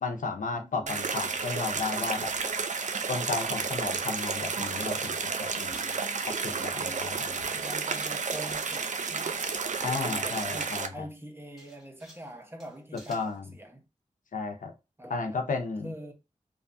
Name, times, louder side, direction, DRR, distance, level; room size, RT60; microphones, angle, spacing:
voice 1, 0.0-2.3 3.1-6.0 6.3-7.6 9.8-11.1 13.1-13.5 14.3-14.7 15.1-15.9, left 4 dB, 80° left, 0.5 m, -34 dB
voice 2, 0.5-1.1 6.7-7.2 7.6-9.5 9.8-13.8 15.0-15.4 15.8-16.1, right 1 dB, 15° right, 0.8 m, -45 dB
sound 1, 0.9-10.9, right 5 dB, 70° right, 0.4 m, -31 dB
sound 2, 11.6-12.3 12.6-13.4, equal, ahead, 1.5 m, -53 dB
2.6 x 2.2 x 2.5 m
cardioid pair, 45°, 13 cm